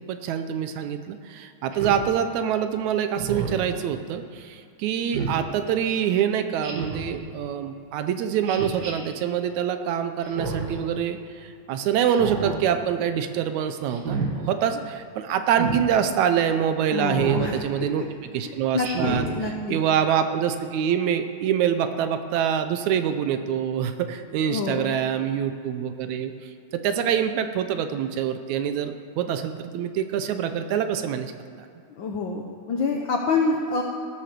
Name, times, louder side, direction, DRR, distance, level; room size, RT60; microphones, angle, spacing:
voice 1, 0.1-18.1 18.3-19.2 19.7-31.3, right 8 dB, 75° right, 9 dB, 1.9 m, -25 dB
Speech synthesizer, 1.7-2.0 3.2-3.7 5.1-5.4 6.6-7.1 8.4-8.9 10.2-10.8 12.1-12.6 13.9-14.3 15.5-15.8 17.2-17.5 18.8-19.3, right 4 dB, 45° right, 1.5 m, -30 dB
voice 2, 16.9-17.6 18.0-18.1 18.4-19.8 24.5-25.0 32.0-33.8, left 4 dB, 80° left, 1 dB, 1.0 m, -27 dB
17.5 x 7.1 x 6.7 m, 2.5 s
omnidirectional pair, 3.6 m